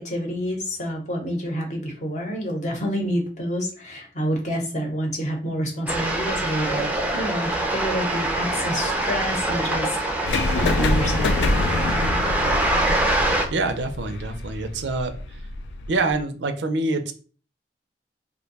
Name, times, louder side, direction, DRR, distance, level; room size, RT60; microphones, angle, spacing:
voice 1, 0.0-9.9 10.1-11.3, equal, 45° left, 1 dB, 0.8 m, -28 dB
sound 1, 5.9-13.5, right 1 dB, 10° right, 0.4 m, -24 dB
sound 2, 10.3-16.2, left 2 dB, 80° left, 0.4 m, -26 dB
voice 2, 13.5-15.2 15.9-17.1, right 3 dB, 85° right, 8 dB, 0.5 m, -25 dB
2.6 x 2.2 x 3.9 m, 0.40 s
head